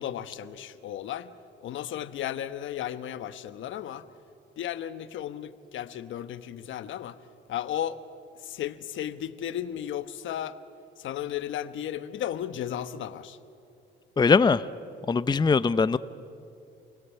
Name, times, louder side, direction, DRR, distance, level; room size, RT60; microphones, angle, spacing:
voice 1, 0.0-1.3 1.6-4.1 4.6-7.2 7.5-8.0 8.4-10.6 11.0-13.4, left 10 dB, 75° left, 12 dB, 1.1 m, -34 dB
voice 2, 14.2-14.6 15.1-16.0, left 5 dB, 20° left, 15 dB, 0.6 m, -21 dB
28.5 x 21.0 x 8.4 m, 2.6 s
cardioid pair, 90°, 20 cm